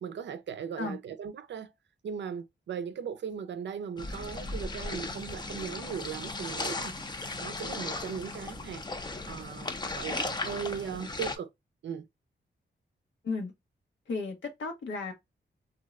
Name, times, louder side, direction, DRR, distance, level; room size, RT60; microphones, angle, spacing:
voice 1, 0.0-1.7 2.0-6.9 7.4-11.5 11.8-12.1, right 7 dB, 75° right, 0.5 m, -38 dB
sound 1, 4.0-11.4, left 3 dB, 25° left, 0.5 m, -36 dB
voice 2, 14.1-15.1, left 4 dB, 85° left, 1.0 m, -34 dB
3.1 x 2.7 x 2.3 m
wide cardioid pair, 95°, 19 cm